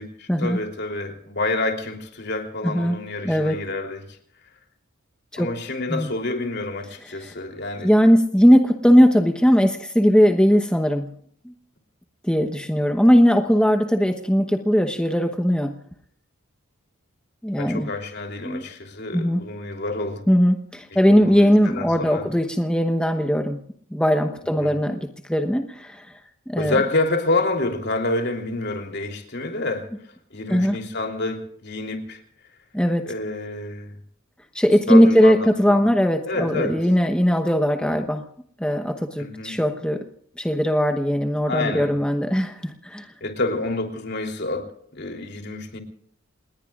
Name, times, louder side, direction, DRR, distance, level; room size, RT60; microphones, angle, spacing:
voice 1, 0.0-4.0 5.4-7.9 17.6-20.2 21.3-22.3 24.6-24.8 26.6-29.9 30.3-32.2 33.1-33.9 34.9-35.8 36.2-36.8 39.2-39.5 41.5-41.9 43.2-44.7 44.9-45.8, left 2 dB, 55° left, 3 dB, 3.4 m, -28 dB
voice 2, 2.6-3.0 3.2-3.6 5.3-5.5 5.9-6.1 7.0-7.3 7.8-11.1 11.4-11.5 12.3-15.7 17.4-17.9 18.4-18.6 19.1-19.4 20.3-23.6 23.9-26.1 26.5-26.8 30.5-30.8 32.7-33.0 34.5-38.2 38.6-40.0 40.4-43.1, equal, 5° left, 5 dB, 1.0 m, -19 dB
28.5 x 20.5 x 2.5 m, 0.62 s
head